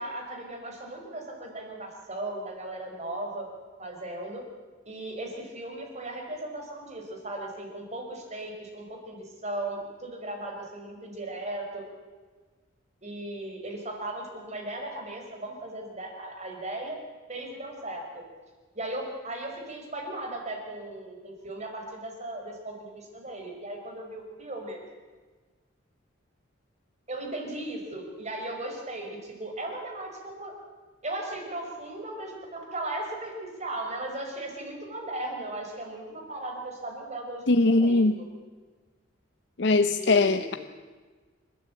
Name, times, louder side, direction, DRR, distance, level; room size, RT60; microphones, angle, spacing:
voice 1, 0.0-3.5 3.8-4.4 4.8-11.8 13.0-17.0 17.3-18.2 18.7-24.8 27.1-30.5 31.0-38.2 39.9-40.6, right 1 dB, 35° right, 2 dB, 5.0 m, -37 dB
voice 2, 37.5-38.2 39.6-40.5, left 3 dB, 60° left, 9 dB, 0.7 m, -21 dB
27.5 x 13.5 x 8.7 m, 1.4 s
head